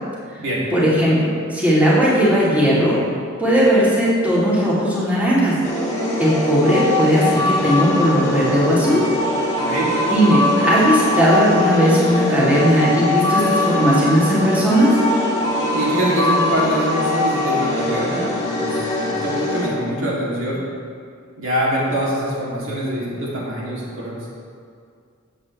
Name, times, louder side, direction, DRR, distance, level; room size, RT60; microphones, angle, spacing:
voice 1, 0.7-3.0 3.4-5.6 6.2-9.0 10.1-15.0, equal, 10° right, -9 dB, 2.8 m, -17 dB
sound 1, 5.6-19.7, left 1 dB, 20° left, 2.1 m, -21 dB
voice 2, 9.5-9.9 15.7-20.6 21.4-24.3, equal, 65° right, -6 dB, 2.7 m, -24 dB
15.5 x 7.9 x 3.3 m, 2.2 s
head